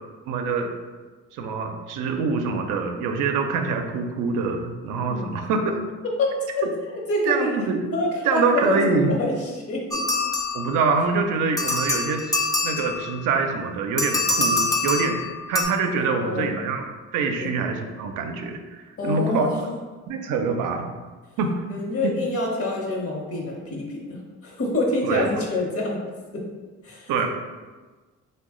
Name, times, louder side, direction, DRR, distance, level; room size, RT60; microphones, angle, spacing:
voice 1, 0.3-0.7 1.3-5.8 6.6-6.7 7.2-7.9 8.2-9.1 10.5-12.3 12.6-15.2 15.5-16.8 17.1-19.5 20.1-20.9 21.4-21.5 22.0-22.1 25.0-25.3 27.1-27.3, right 4 dB, 90° right, 4 dB, 0.5 m, -25 dB
voice 2, 7.1-7.6 7.9-9.3 9.7-10.0 16.0-16.5 17.4-17.5 19.0-19.7 21.7-26.0 26.3-26.4 26.8-27.3, left 2 dB, 50° left, -1 dB, 0.9 m, -26 dB
sound 1, 9.9-11.1 11.6-13.3 14.0-15.6, left 2 dB, 10° left, 0.4 m, -25 dB
3.0 x 2.2 x 3.6 m, 1.3 s
cardioid pair, 90°, 30 cm